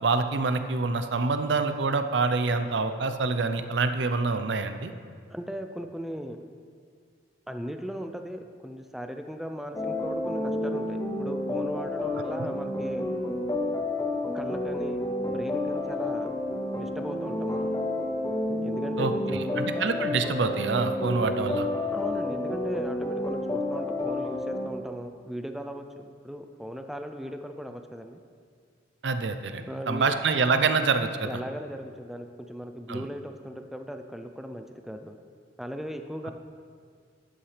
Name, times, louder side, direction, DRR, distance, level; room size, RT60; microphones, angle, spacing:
voice 1, 0.0-4.9 19.0-21.7 29.0-31.4 32.9-33.1, right 4 dB, 65° right, 9 dB, 0.5 m, -26 dB
voice 2, 5.3-6.4 7.5-13.1 14.3-16.3 16.8-17.8 18.6-19.7 21.9-28.2 29.7-30.1 31.2-35.2 35.6-36.3, equal, ahead, 6 dB, 0.3 m, -38 dB
sound 1, 9.7-24.7, left 2 dB, 20° left, 0.8 m, -30 dB
12.5 x 8.7 x 3.3 m, 2.1 s
head